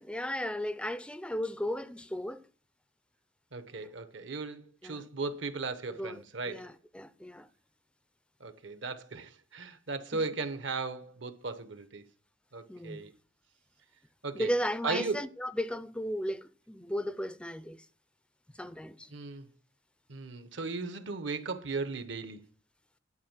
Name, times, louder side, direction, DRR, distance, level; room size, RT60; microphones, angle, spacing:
voice 1, 0.0-2.4 4.8-5.0 6.0-7.5 12.7-13.0 14.3-17.9 18.6-19.1, equal, 5° left, 0.4 m, -35 dB
voice 2, 3.5-6.7 8.4-12.0 12.5-13.1 14.2-14.5 14.8-15.2 19.1-19.5 20.1-22.4, right 4 dB, 70° right, 1.0 m, -37 dB
11.0 x 4.5 x 7.3 m
head